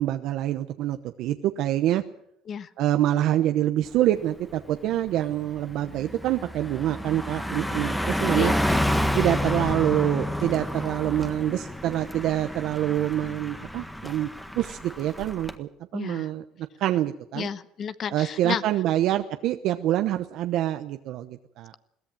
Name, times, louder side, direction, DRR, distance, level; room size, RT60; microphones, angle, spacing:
voice 1, 0.0-2.0 2.8-8.5 9.1-16.4 16.8-17.5 18.1-21.7, right 13 dB, 65° right, 7 dB, 0.9 m, -26 dB
Car passing by, 4.0-4.2 4.6-15.6, left 1 dB, 5° left, 1.5 m, -29 dB
voice 2, 8.3-8.8 15.9-16.3 17.3-18.6, left 8 dB, 40° left, 14 dB, 1.0 m, -32 dB
22.0 x 16.5 x 7.6 m, 0.78 s
cardioid pair, 125°, 0 cm